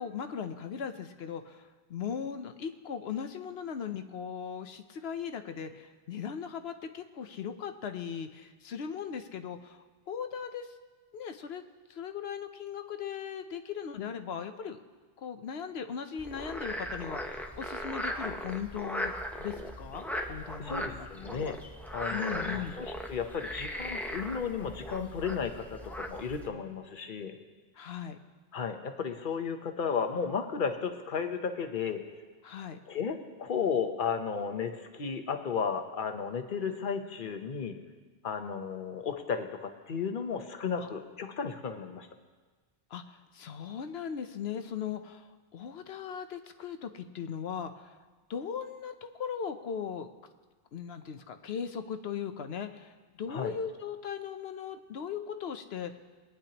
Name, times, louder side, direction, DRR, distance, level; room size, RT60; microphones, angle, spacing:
voice 1, 0.0-10.8 11.1-11.6 11.9-14.8 15.2-19.1 19.4-21.5 22.1-22.8 27.7-28.2 32.4-32.8 40.8-40.9 42.9-47.9 48.3-50.1 50.7-56.0, left 7 dB, 80° left, 8 dB, 1.0 m, -38 dB
Frog, 16.2-26.5, equal, ahead, 0.7 m, -38 dB
voice 2, 20.6-21.6 21.9-27.3 28.5-32.0 32.9-37.7 38.2-42.1 53.3-53.5, left 6 dB, 55° left, 7 dB, 1.0 m, -34 dB
21.5 x 9.9 x 2.9 m, 1.4 s
omnidirectional pair, 1.0 m